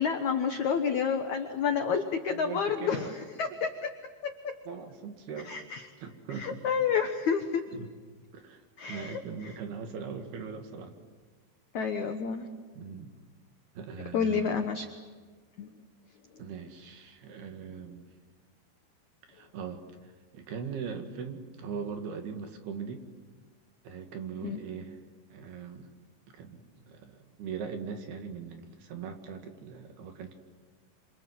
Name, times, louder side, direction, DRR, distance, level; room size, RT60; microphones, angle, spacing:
voice 1, 0.0-3.1 3.4-3.7 5.5-5.9 6.4-7.6 8.8-9.5 11.7-12.5 14.1-14.9 15.6-15.7 24.4-24.6, left 6 dB, 75° left, 6 dB, 1.7 m, -29 dB
voice 2, 2.3-3.1 4.7-5.5 6.0-6.6 7.7-7.9 8.3-8.6 8.9-11.0 12.7-13.1 13.8-14.6 16.4-18.1 19.3-23.1 23.9-25.0 25.3-25.9 26.3-30.3, right 6 dB, 65° right, 5 dB, 3.7 m, -40 dB
27.0 x 26.5 x 7.8 m, 1.5 s
omnidirectional pair, 5.3 m